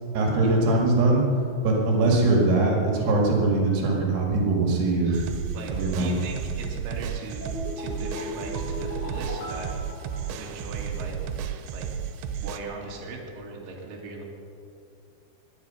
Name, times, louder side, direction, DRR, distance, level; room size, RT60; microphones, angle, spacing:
voice 1, 0.1-1.2 1.6-5.2 5.7-6.2, right 2 dB, 75° right, -1 dB, 4.0 m, -22 dB
voice 2, 5.0-7.4 7.8-9.7 10.3-11.2 11.7-11.9 12.4-14.2, right 3 dB, 55° right, -2 dB, 3.7 m, -39 dB
sound 1, 5.1-12.6, right 8 dB, 90° right, 3.1 m, -33 dB
sound 2, 7.4-10.8 11.1-11.2, left 2 dB, 85° left, 6.8 m, -37 dB
23.0 x 10.5 x 5.7 m, 2.5 s
omnidirectional pair, 5.0 m